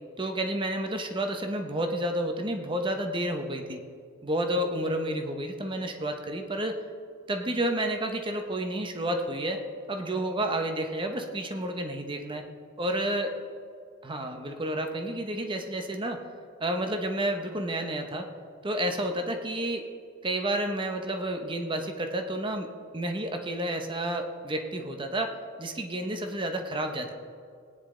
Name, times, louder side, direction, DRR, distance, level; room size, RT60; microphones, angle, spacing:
voice 1, 0.2-3.8 4.2-6.8 7.3-9.6 9.9-12.4 12.8-13.3 14.0-16.2 16.6-18.3 18.6-19.9 20.2-25.3 25.6-27.1, right 1 dB, 25° right, 5 dB, 0.9 m, -30 dB
17.5 x 9.9 x 3.8 m, 2.2 s
head